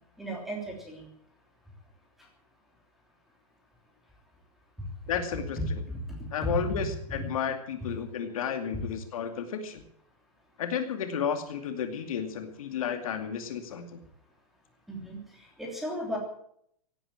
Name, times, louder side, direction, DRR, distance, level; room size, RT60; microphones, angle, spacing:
voice 1, 0.2-1.1 5.6-6.9 14.9-16.2, right 1 dB, ahead, 0 dB, 3.1 m, -35 dB
voice 2, 5.1-5.8 6.3-9.8 10.6-14.0, left 7 dB, 60° left, 6 dB, 2.5 m, -32 dB
17.0 x 9.0 x 9.0 m, 0.70 s
hypercardioid pair, 175°, 20 cm